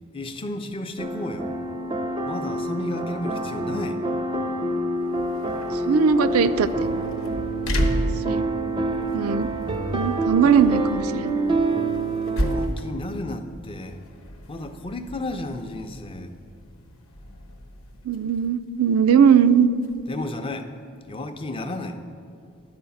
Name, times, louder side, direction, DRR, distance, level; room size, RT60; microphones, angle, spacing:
voice 1, 0.1-1.6 2.3-4.0 12.4-14.0 14.5-16.3 20.1-20.7 21.1-22.0, left 1 dB, 25° left, 7 dB, 0.5 m, -33 dB
sound 1, 1.0-12.7, right 2 dB, 20° right, 0.5 m, -27 dB
sound 2, 5.0-20.3, equal, 70° left, 0.9 m, -34 dB
voice 2, 5.9-6.9 8.3-8.5 9.1-9.5 9.9-11.3 18.0-19.7, right 7 dB, 80° right, 13 dB, 0.4 m, -19 dB
11.5 x 4.7 x 7.0 m, 2.3 s
head